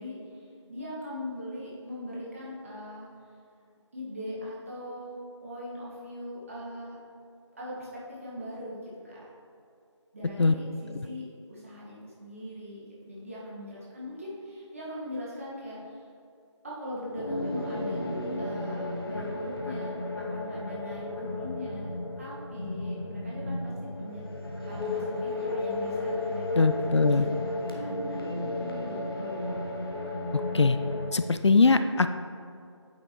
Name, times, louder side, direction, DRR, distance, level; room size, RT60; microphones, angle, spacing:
voice 1, 0.0-3.1 3.9-7.0 7.6-9.2 10.1-16.0 16.6-18.1 18.4-20.0 20.3-24.3 24.6-26.7 27.1-28.4 28.8-29.7, left 1 dB, 30° right, -7 dB, 1.7 m, -40 dB
sound 1, 17.1-31.1, left 2 dB, 50° left, 1.1 m, -33 dB
voice 2, 26.6-27.2 30.5-30.8 31.1-32.1, left 4 dB, 65° left, 10 dB, 0.4 m, -21 dB
8.8 x 6.2 x 3.1 m, 2.5 s
figure-of-eight pair, 165°, 16 cm